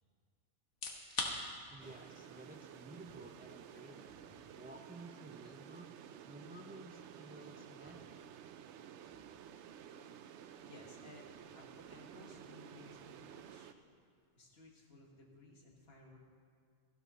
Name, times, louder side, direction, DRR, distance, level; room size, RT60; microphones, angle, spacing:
sound 1, 0.7-15.5, left 3 dB, 70° left, 1.6 m, -51 dB
voice 1, 1.7-4.2 4.5-5.9 6.2-8.2, right 2 dB, 15° right, 4 dB, 0.4 m, -54 dB
sound 2, 1.8-13.7, right 9 dB, 70° right, 0.8 m, -53 dB
voice 2, 4.2-4.7 5.2-5.5 7.8-7.9 9.2-9.3 10.2-10.3 10.6-13.7 14.4-16.2, left 2 dB, 55° left, -1 dB, 1.8 m, -59 dB
14.5 x 12.0 x 4.1 m, 2.2 s
omnidirectional pair, 1.3 m